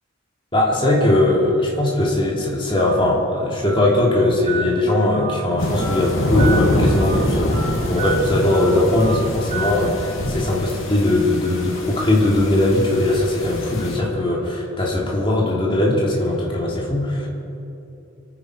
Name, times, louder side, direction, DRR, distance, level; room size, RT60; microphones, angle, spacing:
voice 1, 0.5-17.3, left 1 dB, 25° left, -3 dB, 2.9 m, -20 dB
Telephone, 2.8-2.9 3.6-3.8 4.5-4.6 5.1-5.3 5.8-6.0 6.4-6.6 7.0-7.2 7.5-7.7 8.0-8.1 8.5-8.7 9.0-9.2 9.5-9.7, right 4 dB, 35° right, 2.8 m, -29 dB
sound 1, 5.6-14.0, left 1 dB, 85° left, 2.4 m, -25 dB
26.5 x 9.7 x 5.0 m, 2.9 s
head